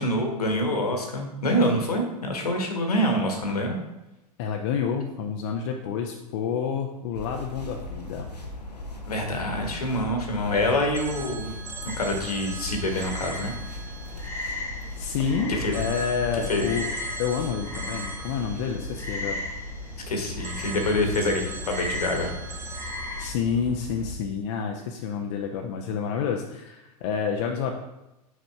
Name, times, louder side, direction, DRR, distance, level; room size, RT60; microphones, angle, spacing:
voice 1, 0.0-3.8 9.1-11.5 12.0-13.5 15.6-15.7 16.5-16.7 20.1-22.3, left 1 dB, 70° left, 3 dB, 1.4 m, -26 dB
voice 2, 4.4-8.3 15.0-16.9 17.2-19.4 23.2-27.7, left 6 dB, 45° left, 2 dB, 0.6 m, -29 dB
sound 1, 7.1-24.1, left 2 dB, 90° left, 0.8 m, -38 dB
Telephone, 10.9-15.2 15.7-19.9 20.4-23.3, right 5 dB, 15° right, 0.5 m, -41 dB
Frog, 11.9-23.3, left 2 dB, 10° left, 1.3 m, -38 dB
6.4 x 4.9 x 3.4 m, 0.96 s
figure-of-eight pair, 90°, 20 cm